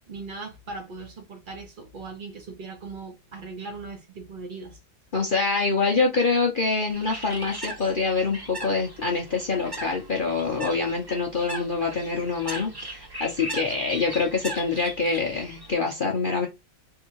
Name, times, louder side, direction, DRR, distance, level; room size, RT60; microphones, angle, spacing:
voice 1, 0.0-4.8, right 3 dB, 85° right, 0.4 m, -39 dB
voice 2, 5.1-16.5, left 4 dB, 65° left, 0.5 m, -25 dB
Bird, 6.9-15.7, right 1 dB, 15° right, 0.8 m, -38 dB
3.5 x 2.8 x 4.5 m
omnidirectional pair, 2.1 m